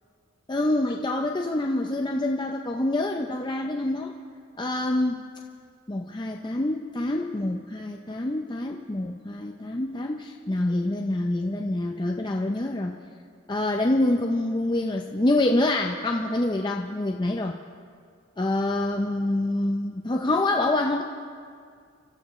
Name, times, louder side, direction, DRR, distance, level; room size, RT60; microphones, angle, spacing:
voice 1, 0.5-4.1 4.6-5.2 5.9-13.0 13.5-17.6 18.4-21.0, left 1 dB, 20° left, 1 dB, 0.5 m, -26 dB
27.5 x 13.0 x 3.1 m, 2.2 s
head